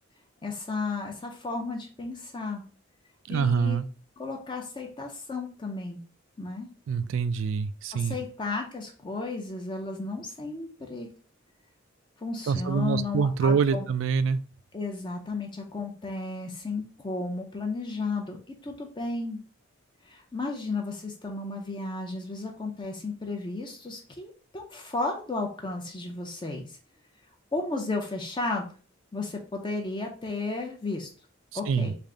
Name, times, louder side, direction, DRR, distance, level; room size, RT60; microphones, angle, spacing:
voice 1, 0.4-2.6 3.3-3.8 4.2-6.0 6.4-6.7 7.9-11.1 12.2-13.9 14.7-19.4 20.0-26.8 27.5-28.7 29.1-31.1 31.5-31.9, left 3 dB, 25° left, 1 dB, 0.5 m, -33 dB
voice 2, 3.3-3.9 6.9-8.1 12.5-14.4 31.5-31.9, right 5 dB, 75° right, 14 dB, 0.3 m, -25 dB
3.4 x 2.5 x 3.7 m, 0.38 s
head